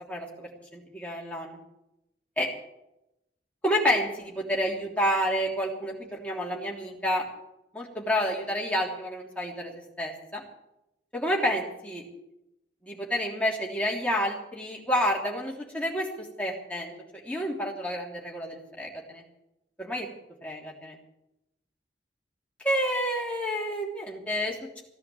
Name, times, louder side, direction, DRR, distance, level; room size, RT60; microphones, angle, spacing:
voice 1, 0.1-1.6 2.4-2.5 3.6-7.2 7.7-10.4 11.1-12.0 12.8-19.2 19.8-20.1 20.4-21.0 22.6-24.8, equal, 5° left, -2 dB, 3.2 m, -29 dB
16.0 x 10.5 x 7.8 m, 0.87 s
head